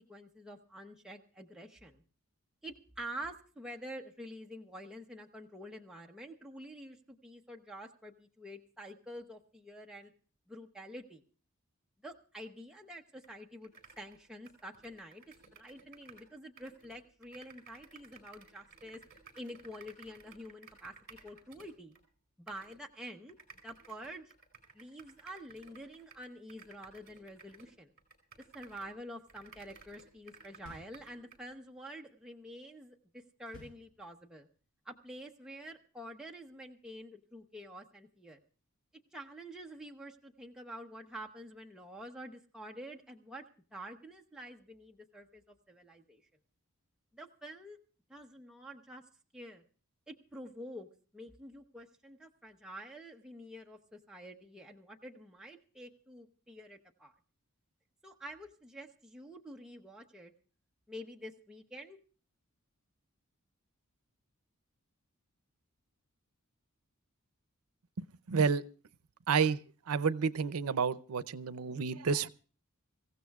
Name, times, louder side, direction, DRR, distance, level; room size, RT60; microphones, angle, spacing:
voice 1, 0.0-2.0 2.6-10.1 10.5-11.2 12.0-13.7 14.0-15.2 15.5-19.0 19.4-21.9 22.4-23.3 23.6-24.3 24.7-27.9 28.5-34.5 34.8-38.4 39.1-43.4 43.7-46.2 47.1-47.8 48.1-49.0 49.3-49.6 50.1-50.9 51.1-57.1 58.0-60.3 60.9-62.0, equal, 5° right, 0.8 m, -48 dB
sound 1, 13.2-13.3 13.6-16.3 16.6-22.0 22.5-22.8 23.3-29.0 29.3-31.5, right 4 dB, 45° right, 4.3 m, -57 dB
sound 2, 30.7-31.6 33.5-34.5, equal, 65° left, 7.3 m, -55 dB
voice 2, 68.0-68.6 69.3-69.6 69.9-72.3, right 5 dB, 90° right, 0.6 m, -30 dB
25.5 x 15.5 x 2.3 m
head